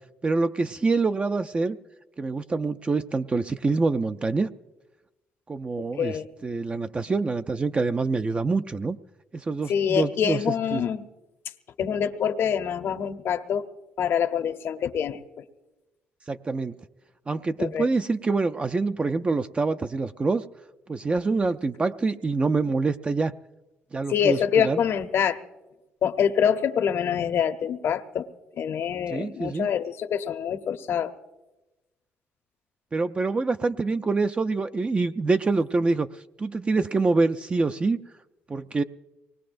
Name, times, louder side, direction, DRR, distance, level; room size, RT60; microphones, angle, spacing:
voice 1, 0.2-1.8 2.2-4.5 5.5-6.2 6.4-9.0 9.3-10.4 10.7-10.8 16.3-16.8 17.3-20.4 20.9-23.3 23.9-24.8 29.1-29.7 32.9-36.1 36.4-38.0 38.5-38.8, right 3 dB, 25° right, 9 dB, 0.4 m, -25 dB
voice 2, 6.0-6.3 9.7-11.0 11.8-13.7 14.0-15.2 17.6-17.9 24.1-25.4 26.0-28.3 28.6-31.2, left 8 dB, 60° left, 7 dB, 0.8 m, -25 dB
24.0 x 19.0 x 2.6 m, 1.1 s
cardioid pair, 90°, 5 cm